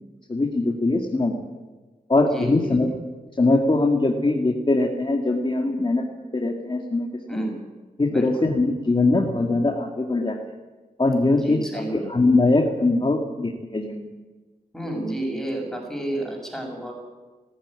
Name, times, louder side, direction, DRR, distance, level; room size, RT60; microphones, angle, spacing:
voice 1, 0.3-1.3 2.1-2.9 3.4-6.0 6.3-7.4 8.0-10.4 11.0-11.6 11.9-14.1, left 2 dB, 30° left, 1 dB, 2.2 m, -21 dB
voice 2, 2.2-2.8 7.3-7.5 8.1-8.5 11.3-12.1 14.7-16.9, right 1 dB, 5° left, 0 dB, 6.6 m, -31 dB
19.5 x 14.5 x 9.8 m, 1.3 s
wide cardioid pair, 100°, 16 cm